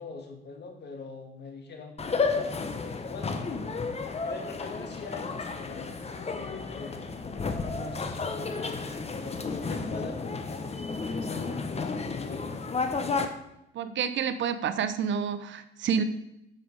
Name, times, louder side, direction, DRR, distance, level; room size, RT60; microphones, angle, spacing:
voice 1, 0.0-3.4 4.2-7.1 7.3-12.6, left 4 dB, 60° left, 4 dB, 2.0 m, -43 dB
sound 1, 2.0-13.3, left 4 dB, 30° left, 1.1 m, -32 dB
voice 2, 13.7-16.0, right 7 dB, 70° right, 11 dB, 0.9 m, -29 dB
9.1 x 6.8 x 4.8 m, 0.84 s
cardioid pair, 90°, 20 cm